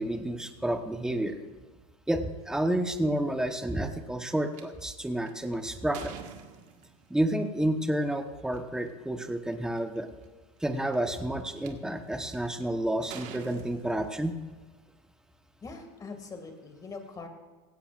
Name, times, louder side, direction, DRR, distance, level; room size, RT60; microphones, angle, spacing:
voice 1, 0.0-1.4 2.1-6.1 7.1-10.1 10.6-14.4, right 1 dB, 5° right, 7 dB, 1.1 m, -30 dB
sound 1, 4.5-4.6 5.3-7.1 8.4-8.6 9.2-9.3 9.5-10.0 10.7-11.7 12.3-12.6 13.1-14.5, right 8 dB, 55° right, 1.6 m, -46 dB
voice 2, 15.6-17.3, left 4 dB, 25° left, 5 dB, 2.2 m, -42 dB
17.0 x 16.5 x 2.5 m, 1.3 s
supercardioid pair, 115°, 15 cm